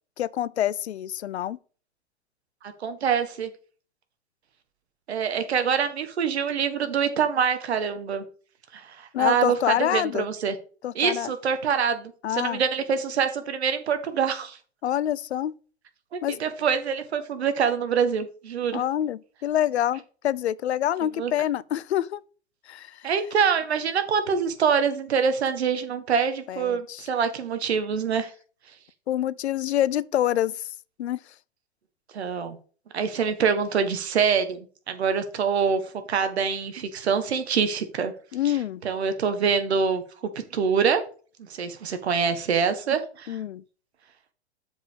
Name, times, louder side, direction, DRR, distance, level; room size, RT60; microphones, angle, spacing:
voice 1, 0.2-1.6 9.1-10.3 10.8-11.3 12.2-12.6 14.8-15.5 16.2-16.4 18.7-22.2 22.7-23.0 26.5-27.1 29.1-30.7 31.0-31.2 38.3-38.8 43.3-43.6, left 11 dB, 75° left, 0.6 m, -26 dB
voice 2, 2.6-3.5 5.1-8.2 8.7-10.5 10.9-14.6 16.1-18.8 21.2-21.3 23.0-28.3 32.1-32.6 32.9-38.1 38.4-38.6 38.8-41.0 41.4-43.4, right 6 dB, 75° right, 1.7 m, -25 dB
7.3 x 5.2 x 5.2 m
hypercardioid pair, 110°, 33 cm